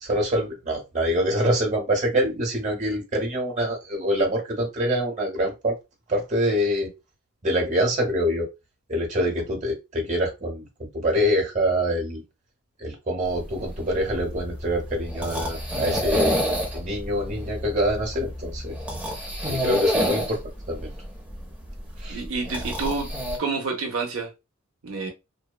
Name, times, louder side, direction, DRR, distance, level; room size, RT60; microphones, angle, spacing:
voice 1, 0.0-5.8 6.1-6.9 7.4-8.5 8.9-12.2 12.8-18.8 19.4-20.4 20.7-20.9 22.0-22.2, equal, 35° right, 0.9 m, -25 dB
sound 1, 13.3-23.4, equal, 5° right, 0.6 m, -29 dB
sound 2, 14.0-19.2 19.8-19.9, left 1 dB, 55° left, 0.6 m, -39 dB
voice 2, 22.1-23.1 23.4-24.3 24.8-25.1, right 4 dB, 80° right, 0.5 m, -28 dB
2.7 x 2.2 x 2.2 m
head